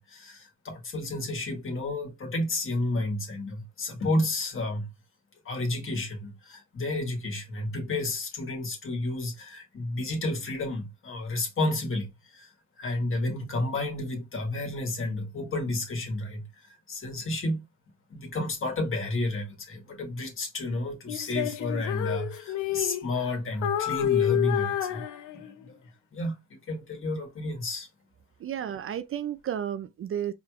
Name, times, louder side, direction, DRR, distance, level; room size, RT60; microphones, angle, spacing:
voice 1, 0.0-4.9 5.4-12.5 12.8-16.5 16.9-17.6 18.1-25.0 25.3-25.7 26.1-27.9, left 2 dB, 45° left, 1.6 m, -31 dB
Female singing, 21.1-23.3 23.6-25.7, left 11 dB, 80° left, 0.7 m, -29 dB
voice 2, 28.4-30.3, right 9 dB, 45° right, 0.4 m, -32 dB
4.7 x 3.2 x 2.4 m
cardioid pair, 90°, 30 cm